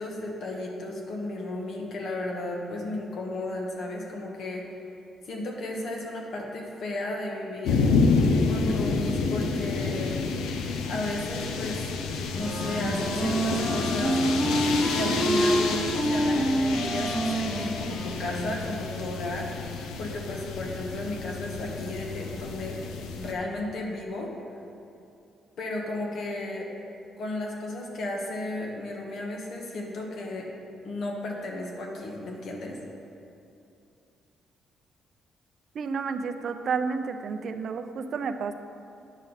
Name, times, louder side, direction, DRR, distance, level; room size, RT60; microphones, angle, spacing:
voice 1, 0.0-4.6 5.3-7.9 8.4-10.2 10.9-11.8 12.3-14.2 14.9-19.5 20.0-22.8 23.1-24.3 25.6-26.7 27.2-30.5 30.8-32.8, left 2 dB, 65° left, 0 dB, 1.4 m, -34 dB
sound 1, 7.6-23.3, left 4 dB, 90° left, 0.6 m, -29 dB
Wind instrument woodwind instrument, 12.3-18.5, right 1 dB, 10° right, 1.0 m, -27 dB
voice 2, 35.7-38.5, right 5 dB, 60° right, 8 dB, 0.5 m, -31 dB
9.3 x 6.4 x 4.0 m, 2.6 s
cardioid pair, 90°, 0 cm